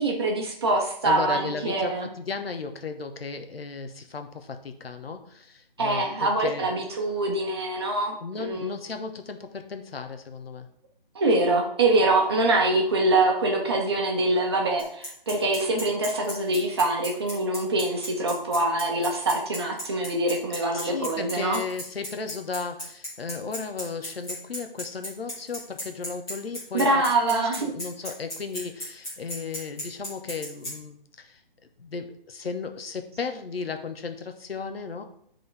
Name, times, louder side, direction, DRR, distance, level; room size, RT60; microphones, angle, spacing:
voice 1, 0.0-2.1 5.8-8.7 11.1-21.6 26.7-27.7, right 2 dB, 25° right, 0 dB, 1.0 m, -24 dB
voice 2, 1.0-6.7 8.2-10.7 20.7-26.9 27.3-31.4 31.8-35.0, left 5 dB, 85° left, 7 dB, 1.1 m, -35 dB
Bicycle, 14.8-30.7, equal, 10° left, 1.4 m, -35 dB
9.1 x 3.9 x 3.4 m, 0.67 s
hypercardioid pair, 170°, 29 cm